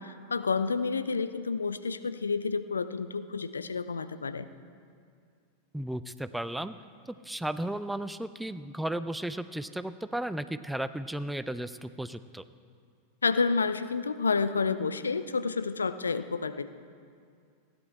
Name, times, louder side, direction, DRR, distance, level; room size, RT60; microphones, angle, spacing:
voice 1, 0.0-4.5 13.2-16.7, left 4 dB, 75° left, 13 dB, 0.5 m, -29 dB
voice 2, 5.7-6.7 7.2-12.4, right 1 dB, 5° right, 13 dB, 0.4 m, -34 dB
16.0 x 10.5 x 4.4 m, 2.3 s
figure-of-eight pair, 90°, 0 cm